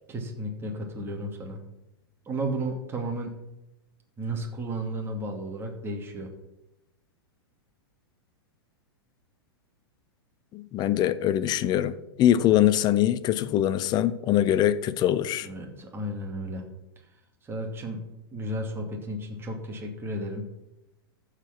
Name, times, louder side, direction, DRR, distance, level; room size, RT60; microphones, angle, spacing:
voice 1, 0.1-1.6 2.3-3.3 4.2-6.3 15.4-16.6 17.4-18.0 18.3-20.4, right 1 dB, 20° right, 2.5 m, -33 dB
voice 2, 10.5-15.5, left 12 dB, 35° left, 0.7 m, -23 dB
14.5 x 5.0 x 6.0 m
hypercardioid pair, 105°, 13 cm